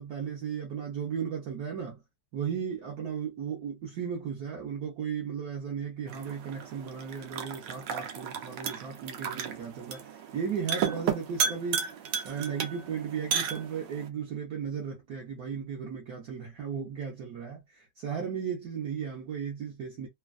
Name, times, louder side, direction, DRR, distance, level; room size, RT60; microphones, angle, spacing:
voice 1, 0.0-2.0 2.3-11.9 12.2-20.1, right 7 dB, 65° right, 1.2 m, -35 dB
sound 1, 6.1-14.1, right 7 dB, 85° right, 1.3 m, -34 dB
3.2 x 2.2 x 2.4 m
omnidirectional pair, 1.9 m